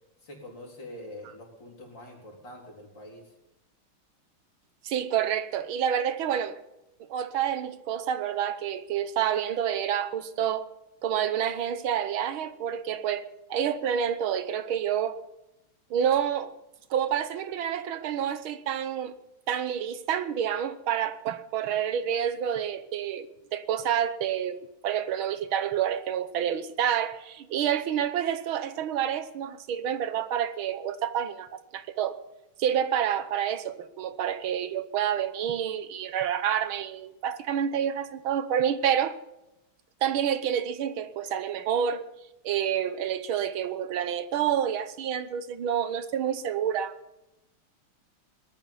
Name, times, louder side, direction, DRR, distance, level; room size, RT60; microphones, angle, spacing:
voice 1, 0.2-3.3, left 1 dB, 55° left, 4.7 m, -45 dB
voice 2, 4.8-6.6 7.1-10.7 11.0-15.2 15.9-16.5 16.9-19.2 19.5-23.3 23.5-32.2 32.6-39.2 40.0-42.0 42.4-46.9, right 9 dB, 75° right, 1.8 m, -28 dB
19.0 x 13.0 x 5.5 m
omnidirectional pair, 2.3 m